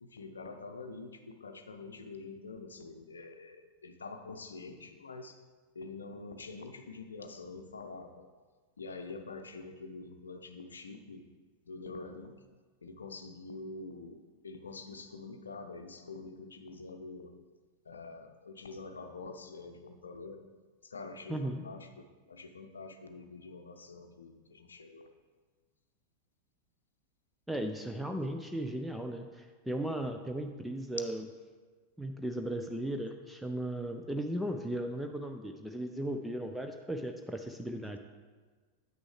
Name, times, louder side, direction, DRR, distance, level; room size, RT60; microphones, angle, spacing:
voice 1, 0.0-5.4 5.7-8.3 8.8-11.3 11.7-12.4 12.8-17.3 17.9-20.4 20.8-25.1, left 3 dB, 75° left, 7 dB, 0.6 m, -46 dB
voice 2, 21.3-21.6 27.5-31.2 32.0-38.0, right 1 dB, 5° right, 4 dB, 0.4 m, -36 dB
9.1 x 6.1 x 3.2 m, 1.4 s
figure-of-eight pair, 90°, 0 cm